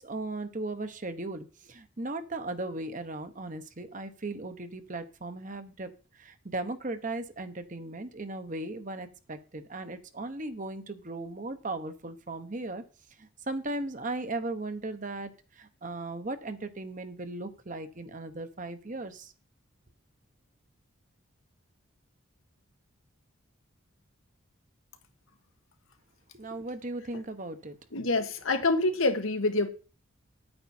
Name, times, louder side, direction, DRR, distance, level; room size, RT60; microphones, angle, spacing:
voice 1, 0.0-12.8 13.2-19.3 26.3-27.8, right 2 dB, 40° right, 1.0 m, -37 dB
voice 2, 27.9-29.7, left 2 dB, 80° left, 1.5 m, -26 dB
9.6 x 8.8 x 4.4 m
head